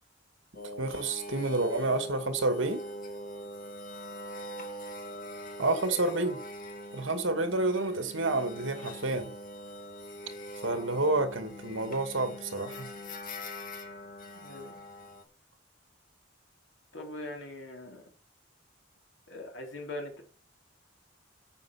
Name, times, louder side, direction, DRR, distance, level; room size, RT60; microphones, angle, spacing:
sound 1, 0.5-15.2, equal, 45° left, 1.9 m, -42 dB
voice 1, 0.8-2.8 5.6-6.4 6.9-9.3 10.6-12.9, right 2 dB, 75° right, 7 dB, 2.2 m, -29 dB
voice 2, 14.3-14.8 16.9-18.1 19.3-20.2, left 1 dB, 75° left, 1 dB, 3.7 m, -41 dB
9.3 x 6.7 x 6.2 m, 0.41 s
head